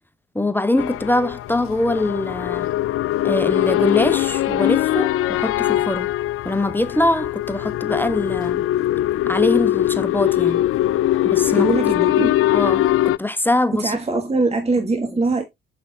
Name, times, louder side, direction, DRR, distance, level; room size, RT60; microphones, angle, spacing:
voice 1, 0.3-2.8 3.2-6.1 6.4-8.6 9.3-10.6 11.2-11.7 12.5-14.2, left 1 dB, 5° left, 0.9 m, -23 dB
sound 1, 0.8-13.2, left 14 dB, 45° left, 0.4 m, -21 dB
voice 2, 11.5-12.6 13.8-15.4, right 3 dB, 20° right, 1.5 m, -22 dB
6.3 x 6.1 x 2.7 m
hypercardioid pair, 50°, 30 cm